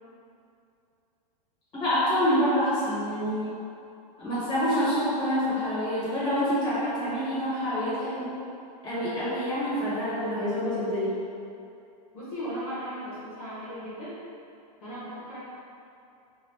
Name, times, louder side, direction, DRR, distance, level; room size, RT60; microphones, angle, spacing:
voice 1, 1.7-3.6 4.2-8.3 8.8-11.1, equal, 20° left, -12 dB, 1.5 m, -27 dB
voice 2, 12.1-14.2 14.8-15.4, equal, 60° left, -9 dB, 1.1 m, -37 dB
2.6 x 2.5 x 3.4 m, 2.6 s
supercardioid pair, 160°, 21 cm